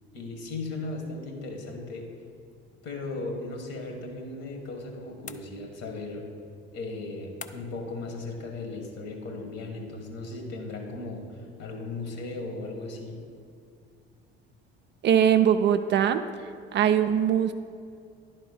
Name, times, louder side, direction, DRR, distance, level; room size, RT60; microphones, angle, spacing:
voice 1, 0.1-2.1 2.8-6.3 6.7-13.2, left 2 dB, 55° left, 3 dB, 1.8 m, -37 dB
sound 1, 5.3-6.0 7.4-7.9, left 7 dB, 25° left, 0.4 m, -45 dB
voice 2, 15.0-16.2 16.7-17.5, right 9 dB, 40° right, 8 dB, 0.4 m, -21 dB
10.5 x 4.2 x 5.4 m, 2.4 s
hypercardioid pair, 65°, 30 cm